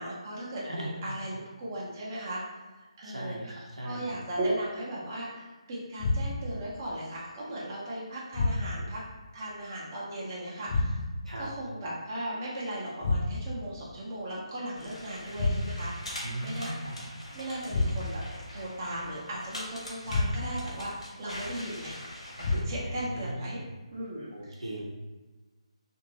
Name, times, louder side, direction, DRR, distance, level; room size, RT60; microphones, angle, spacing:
voice 1, 0.0-2.4 3.0-9.0 9.3-11.0 11.4-15.9 16.4-16.7 17.3-18.2 18.5-22.0 22.6-23.6 23.9-24.6, right 1 dB, 30° right, -7 dB, 0.7 m, -37 dB
voice 2, 3.0-4.1 11.2-11.5 16.2-17.1 22.7-23.7 24.3-24.8, right 1 dB, 80° right, -3 dB, 0.8 m, -38 dB
sound 1, 6.0-6.6 8.3-9.0 10.7-11.3 13.0-13.7 15.4-16.0 17.7-18.3 20.1-20.7 22.4-23.0, left 2 dB, 35° left, 0.5 m, -29 dB
sound 2, 14.8-22.6, left 1 dB, 65° left, 1.0 m, -43 dB
2.8 x 2.6 x 2.9 m, 1.2 s
figure-of-eight pair, 150°, 3 cm